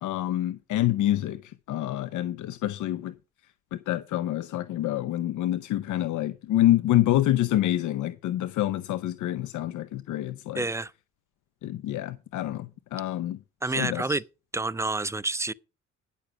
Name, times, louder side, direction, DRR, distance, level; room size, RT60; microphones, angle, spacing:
voice 1, 0.0-3.1 3.4-10.7 11.6-13.4 13.7-14.2, left 13 dB, 75° left, 0.7 m, -27 dB
voice 2, 10.6-10.9 13.6-14.2 14.5-15.5, right 3 dB, 10° right, 0.5 m, -28 dB
10.0 x 6.9 x 5.8 m
cardioid pair, 90°, 30 cm